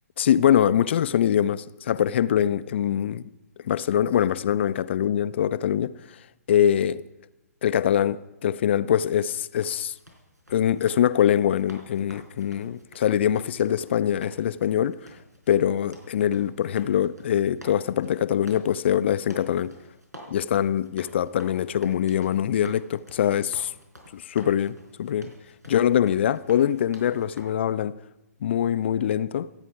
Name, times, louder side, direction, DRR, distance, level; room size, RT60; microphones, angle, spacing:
voice 1, 0.2-3.3 3.6-6.2 6.5-7.0 7.6-10.0 10.5-15.1 15.5-19.7 20.3-23.7 24.1-25.3 25.7-27.9 28.4-29.5, left 10 dB, 45° left, 0.5 m, -23 dB
sound 1, 9.2-27.4, equal, 90° right, 4.3 m, -50 dB
26.5 x 9.0 x 4.7 m
figure-of-eight pair, 130°, 9 cm